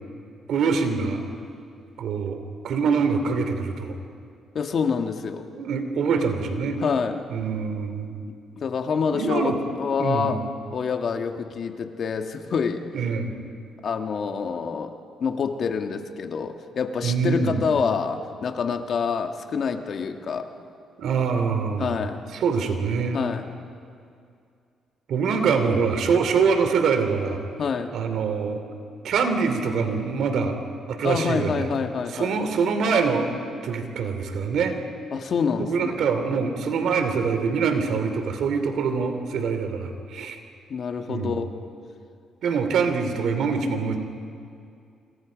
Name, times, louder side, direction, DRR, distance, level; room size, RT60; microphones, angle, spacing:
voice 1, 0.5-1.2 2.0-2.4 2.6-3.9 5.5-6.8 7.3-8.2 9.1-9.6 10.0-10.4 12.9-13.3 17.0-17.6 21.0-21.9 22.3-23.2 25.1-27.4 27.9-28.6 29.0-30.6 30.9-31.7 32.1-33.3 33.6-34.8 35.6-40.4 41.1-41.3 42.4-44.0, right 5 dB, 70° right, 7 dB, 2.9 m, -24 dB
voice 2, 4.6-5.5 6.8-7.3 8.5-10.4 10.7-12.8 13.8-20.5 21.8-22.2 23.1-23.5 27.6-27.9 31.0-32.4 35.1-36.1 40.7-41.5, left 6 dB, 55° left, 6 dB, 1.8 m, -27 dB
28.0 x 26.0 x 5.2 m, 2.4 s
cardioid pair, 90°, 0 cm